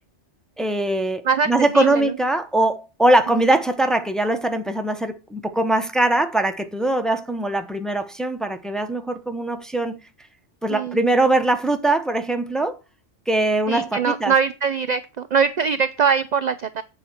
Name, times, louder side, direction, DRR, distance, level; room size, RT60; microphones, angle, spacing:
voice 1, 0.6-10.0 10.6-12.8 13.3-14.3, right 2 dB, ahead, 0.9 m, -21 dB
voice 2, 1.7-2.1 10.7-11.0 13.7-16.8, right 6 dB, 50° right, 0.5 m, -22 dB
8.6 x 5.1 x 7.0 m
omnidirectional pair, 1.2 m